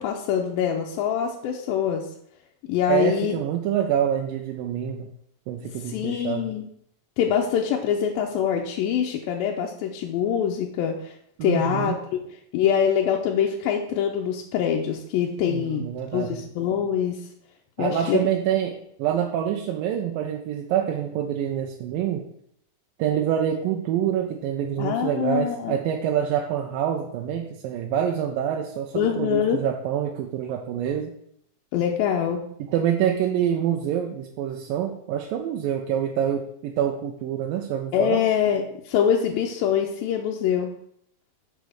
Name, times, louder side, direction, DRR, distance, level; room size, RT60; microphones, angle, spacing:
voice 1, 0.0-2.1 2.7-3.4 5.9-6.6 7.2-11.1 11.4-11.9 12.5-15.9 16.1-17.2 17.8-18.2 24.8-25.8 29.0-29.7 31.7-32.5 37.9-40.8, left 8 dB, 85° left, 0 dB, 2.5 m, -24 dB
voice 2, 2.9-5.1 5.5-6.5 11.4-12.0 15.4-16.4 17.8-22.2 23.0-31.1 32.6-38.2, right 9 dB, 85° right, 2 dB, 2.4 m, -26 dB
6.7 x 5.1 x 6.3 m, 0.70 s
omnidirectional pair, 4.1 m